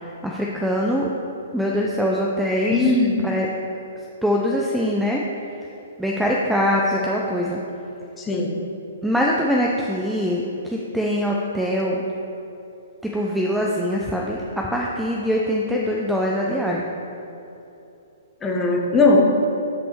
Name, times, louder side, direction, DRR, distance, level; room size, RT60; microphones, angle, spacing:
voice 1, 0.0-1.1 1.5-2.9 3.2-3.5 4.2-5.2 6.0-7.6 9.0-12.0 13.1-16.9, equal, 5° right, -3 dB, 0.5 m, -23 dB
voice 2, 2.7-3.1 8.3-8.5 18.4-19.3, left 3 dB, 15° left, 0 dB, 1.0 m, -18 dB
5.8 x 5.3 x 6.0 m, 2.9 s
figure-of-eight pair, 120°, 0 cm